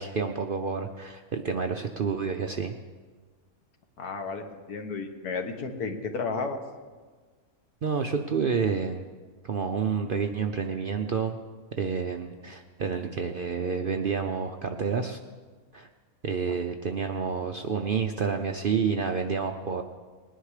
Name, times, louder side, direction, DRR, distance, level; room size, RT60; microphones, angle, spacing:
voice 1, 0.0-2.7 7.8-9.1 9.4-11.4 11.8-15.2 15.7-15.9 16.2-19.8, right 6 dB, 60° right, 5 dB, 0.6 m, -29 dB
voice 2, 4.0-6.6, left 4 dB, 85° left, 5 dB, 1.7 m, -33 dB
20.0 x 10.0 x 4.9 m, 1.5 s
omnidirectional pair, 1.6 m